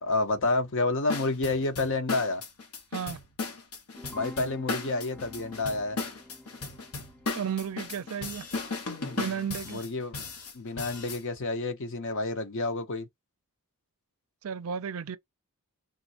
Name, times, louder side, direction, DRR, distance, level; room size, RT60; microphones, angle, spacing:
voice 1, 0.0-2.4 4.1-6.0 9.7-13.1, left 3 dB, 60° left, 0.7 m, -29 dB
sound 1, 1.1-11.2, left 3 dB, 85° left, 1.0 m, -36 dB
sound 2, 3.9-8.9, left 1 dB, 5° left, 0.4 m, -48 dB
voice 2, 7.3-8.5 9.2-9.8 14.4-15.2, right 7 dB, 65° right, 0.4 m, -33 dB
3.7 x 2.5 x 2.8 m
head